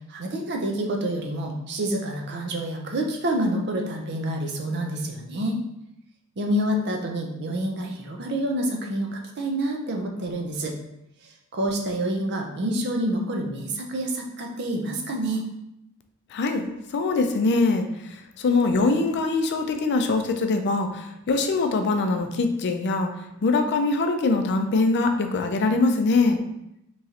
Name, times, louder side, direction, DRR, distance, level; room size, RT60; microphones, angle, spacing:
voice 1, 0.1-5.6 6.4-10.7 11.2-15.5, right 1 dB, 50° right, 2 dB, 0.6 m, -28 dB
voice 2, 16.3-23.1 23.4-26.4, left 3 dB, 55° left, 6 dB, 0.4 m, -23 dB
3.7 x 3.0 x 2.8 m, 0.85 s
head